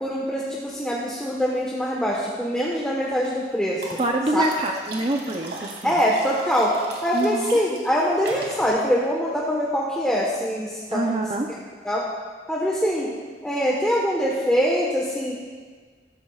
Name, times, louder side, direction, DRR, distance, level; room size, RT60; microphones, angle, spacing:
voice 1, 0.0-3.9 4.3-4.4 5.8-6.7 7.0-11.2 11.8-12.0 12.5-13.1 13.4-15.3, equal, 5° left, -5 dB, 1.2 m, -23 dB
sound 1, 3.0-3.3 3.8-8.7, right 2 dB, 85° right, 2.7 m, -38 dB
voice 2, 4.0-5.9 7.1-7.6 10.9-11.5, right 1 dB, 35° right, 3 dB, 0.7 m, -25 dB
14.5 x 14.5 x 2.4 m, 1.5 s
head